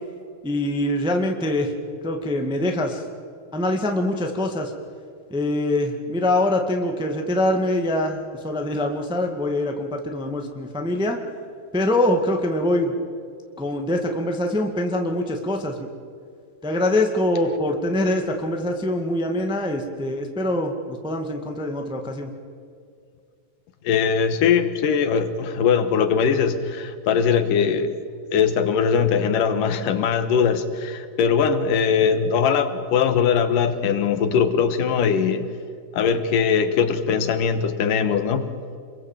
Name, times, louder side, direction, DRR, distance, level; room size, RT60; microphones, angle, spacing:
voice 1, 0.4-1.7 2.0-3.0 3.5-4.7 5.3-11.2 11.7-12.9 13.6-15.9 16.6-22.3, left 1 dB, ahead, 3 dB, 1.0 m, -24 dB
voice 2, 23.8-27.9 28.3-35.4 35.9-38.4, left 6 dB, 75° left, 10 dB, 2.8 m, -21 dB
28.0 x 22.5 x 7.5 m, 2.3 s
omnidirectional pair, 3.9 m